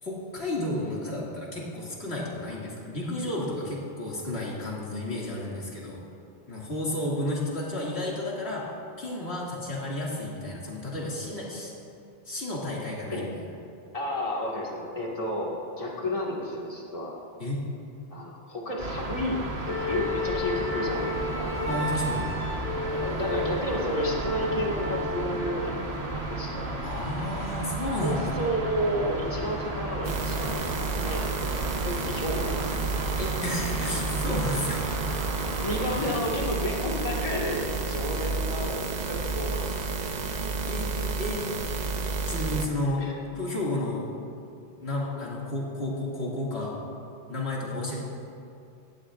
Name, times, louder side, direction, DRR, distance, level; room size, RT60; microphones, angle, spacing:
voice 1, 0.0-6.0 6.5-8.6 9.0-11.7 12.3-13.4 17.4-17.6 21.6-22.3 26.8-28.2 33.2-34.9 40.7-40.9 41.2-41.4 42.2-43.0 43.4-44.1 44.8-46.8 47.3-48.0, left 1 dB, 85° left, -5 dB, 2.6 m, -32 dB
voice 2, 13.1-13.4 13.9-17.1 18.1-19.4 19.7-21.5 22.8-25.8 26.1-26.8 27.9-32.6 35.6-39.7 43.0-43.2, equal, 35° left, -3 dB, 1.9 m, -32 dB
sound 1, 18.8-36.2, right 2 dB, 80° right, 1.5 m, -33 dB
Wind instrument woodwind instrument, 19.6-25.5, left 3 dB, 65° left, 2.5 m, -32 dB
sound 2, 30.0-42.7, right 3 dB, 45° right, 0.8 m, -31 dB
18.5 x 15.0 x 2.5 m, 2.6 s
omnidirectional pair, 1.1 m